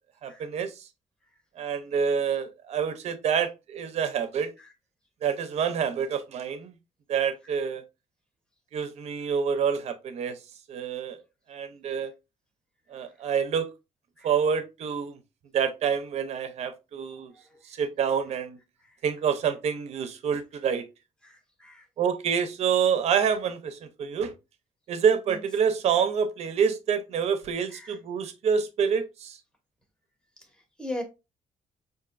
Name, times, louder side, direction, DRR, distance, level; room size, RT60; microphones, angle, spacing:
voice 1, 0.2-0.8 1.6-4.5 5.2-6.8 7.1-7.8 8.7-10.4 10.7-11.2 11.5-12.1 12.9-13.7 14.2-15.2 15.5-17.3 17.7-18.6 19.0-20.9 22.0-24.3 24.9-29.4, right 7 dB, 55° right, 0.6 m, -27 dB
voice 2, 21.2-21.8 25.3-25.4 27.7-28.0 30.8-31.0, left 1 dB, 5° left, 0.8 m, -37 dB
4.8 x 2.6 x 2.5 m
cardioid pair, 165°, 14 cm